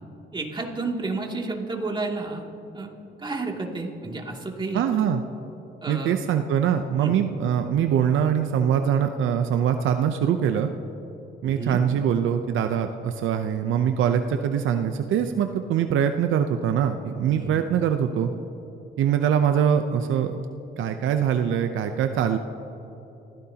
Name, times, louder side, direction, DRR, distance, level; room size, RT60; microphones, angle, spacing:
voice 1, 0.3-2.5 2.7-2.9 3.2-4.8 5.8-6.2 7.0-7.2 11.4-11.8 17.2-17.5, right 3 dB, 25° right, -1 dB, 2.6 m, -31 dB
voice 2, 4.7-5.2 5.9-10.7 11.4-18.3 19.0-20.4 20.8-22.4, right 8 dB, 80° right, 7 dB, 0.7 m, -23 dB
27.5 x 15.5 x 2.9 m, 2.9 s
cardioid pair, 90°, 20 cm